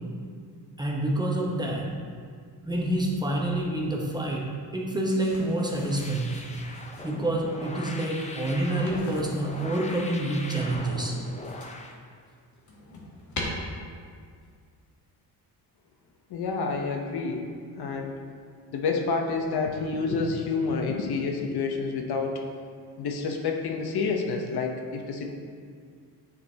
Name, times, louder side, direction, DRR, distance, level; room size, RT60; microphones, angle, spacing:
voice 1, 0.8-1.9 2.6-6.4 7.0-11.1, right 1 dB, 10° right, -3 dB, 0.9 m, -27 dB
sound 1, 5.2-7.2 8.6-9.9 10.7-11.9 12.4-13.4, left 3 dB, 45° left, 1.3 m, -42 dB
sound 2, 5.9-11.9, left 2 dB, 15° left, 0.5 m, -40 dB
voice 2, 16.3-17.5 17.8-18.2 18.7-22.4 23.0-25.3, left 4 dB, 65° left, 2 dB, 0.8 m, -28 dB
9.2 x 5.1 x 2.8 m, 2.1 s
cardioid pair, 125°, 42 cm